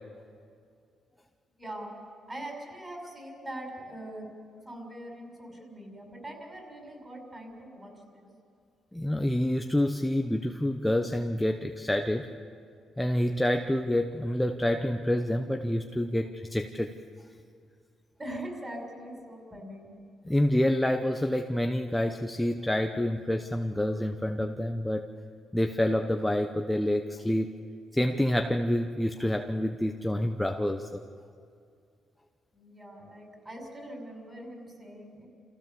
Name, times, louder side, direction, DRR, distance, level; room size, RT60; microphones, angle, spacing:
voice 1, 1.6-2.0 2.3-4.3 4.6-8.3 18.2-19.9 32.5-35.3, right 1 dB, 20° right, 1 dB, 5.9 m, -42 dB
voice 2, 8.9-12.3 13.0-16.9 20.3-25.1 25.5-27.5 27.9-31.0, left 1 dB, 5° left, 5 dB, 0.9 m, -27 dB
27.0 x 15.5 x 7.1 m, 2.3 s
cardioid pair, 90°, 0 cm